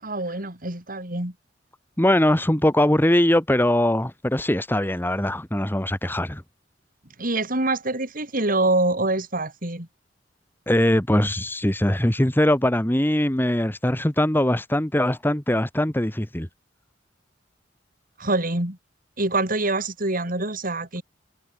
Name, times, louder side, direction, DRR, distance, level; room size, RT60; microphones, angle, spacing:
voice 1, 0.0-1.3 7.2-9.9 18.2-18.8 19.2-21.0, right 2 dB, 50° right, 5.3 m, -25 dB
voice 2, 2.0-6.4 10.7-16.5, left 1 dB, 10° left, 1.7 m, -21 dB
head